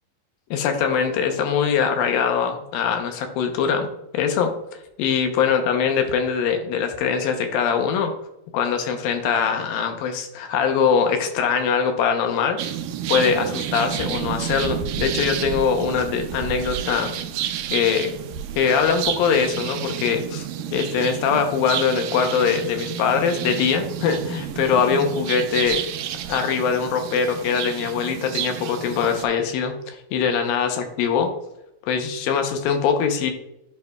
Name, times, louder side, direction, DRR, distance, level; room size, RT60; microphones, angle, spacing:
voice 1, 0.5-4.5 5.0-8.1 8.5-12.6 13.1-17.1 17.7-18.1 18.6-25.8 26.3-31.3 31.8-33.3, left 6 dB, 75° left, 5 dB, 2.6 m, -22 dB
sound 1, 12.6-29.3, right 10 dB, 80° right, 2.1 m, -30 dB
11.0 x 5.3 x 2.3 m, 0.84 s
omnidirectional pair, 4.3 m